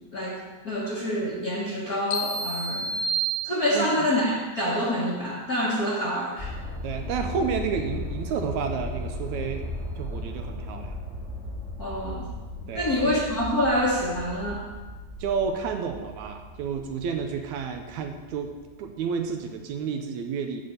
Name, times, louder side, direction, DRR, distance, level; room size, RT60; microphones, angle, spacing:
voice 1, 0.1-2.9 3.4-6.5 11.8-12.2 12.7-14.7, equal, 45° left, -6 dB, 1.2 m, -26 dB
sound 1, 2.1-4.0, right 3 dB, 85° left, 2.5 m, -29 dB
voice 2, 3.7-4.1 6.8-9.6 10.0-11.0 12.7-13.2 15.2-18.5 18.8-20.6, right 6 dB, 75° right, 5 dB, 1.9 m, -30 dB
sound 2, 6.4-19.1 19.6-19.7, left 2 dB, 20° right, 1.4 m, -37 dB
11.0 x 4.3 x 7.9 m, 1.3 s
omnidirectional pair, 3.6 m